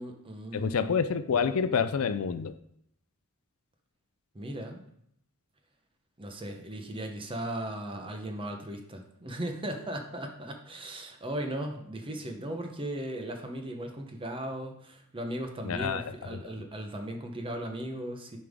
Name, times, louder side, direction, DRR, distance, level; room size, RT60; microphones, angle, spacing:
voice 1, 0.0-1.0 4.3-4.8 6.2-18.4, right 1 dB, 25° right, 4 dB, 0.9 m, -37 dB
voice 2, 0.5-2.5 15.6-16.0 16.3-16.5, left 6 dB, 75° left, 11 dB, 0.4 m, -28 dB
9.9 x 5.4 x 3.6 m, 0.72 s
head